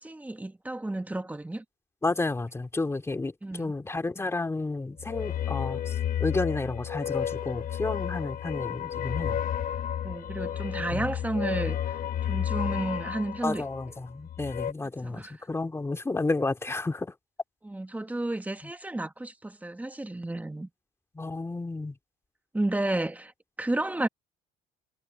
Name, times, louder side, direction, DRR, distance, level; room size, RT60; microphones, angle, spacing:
voice 1, 0.0-1.6 3.4-3.7 10.0-12.0 12.2-13.6 15.0-15.4 17.6-20.7 22.5-23.3 23.6-24.1, right 2 dB, 10° right, 1.6 m, -32 dB
voice 2, 2.0-9.4 10.9-11.1 13.4-17.1 18.6-18.7 21.1-21.9, left 3 dB, 15° left, 2.4 m, -31 dB
sound 1, 5.0-14.7, left 10 dB, 55° left, 1.0 m, -32 dB
cardioid pair, 110°, 17 cm